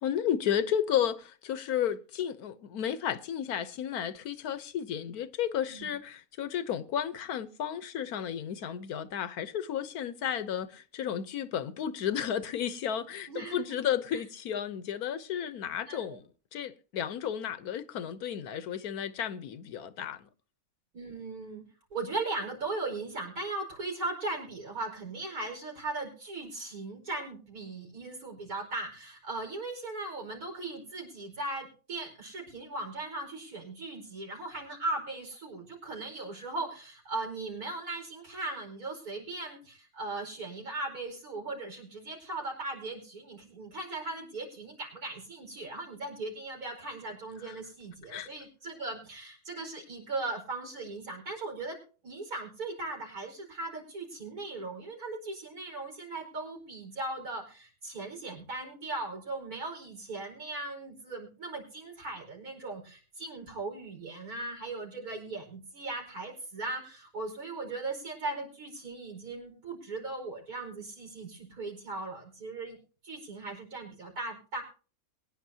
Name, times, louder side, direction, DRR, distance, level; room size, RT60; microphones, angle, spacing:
voice 1, 0.0-16.2 16.5-20.3 47.5-47.6 48.1-48.3, left 9 dB, 90° left, 1.4 m, -33 dB
voice 2, 13.3-13.6 14.1-14.2 15.9-16.2 20.9-21.6 21.9-72.8 73.0-74.6, right 2 dB, 85° right, 5.4 m, -38 dB
23.0 x 10.0 x 2.8 m
omnidirectional pair, 1.5 m